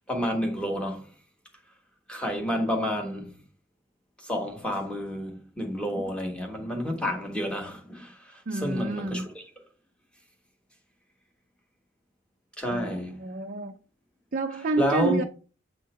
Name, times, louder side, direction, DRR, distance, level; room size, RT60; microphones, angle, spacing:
voice 1, 0.1-1.1 2.1-3.4 4.2-9.4 12.6-13.1 14.8-15.2, equal, 5° left, 1.3 m, -30 dB
voice 2, 8.5-9.3 12.7-13.7 14.3-15.2, right 3 dB, 40° right, 0.5 m, -29 dB
7.6 x 3.7 x 4.3 m
head